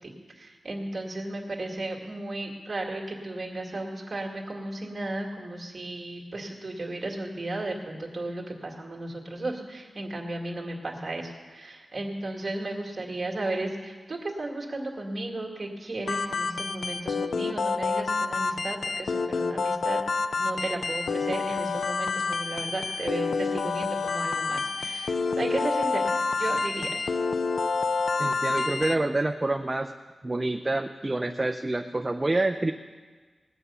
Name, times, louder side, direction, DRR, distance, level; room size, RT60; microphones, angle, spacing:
voice 1, 0.0-20.0 20.3-26.1 26.3-27.1 28.3-28.4, right 2 dB, 35° right, 0 dB, 1.9 m, -34 dB
sound 1, 16.1-29.0, left 4 dB, 75° left, 0.5 m, -28 dB
voice 2, 28.2-29.9 30.2-32.7, right 2 dB, 20° right, 6 dB, 0.4 m, -27 dB
19.0 x 8.1 x 5.5 m, 1.4 s
wide cardioid pair, 130°, 0 cm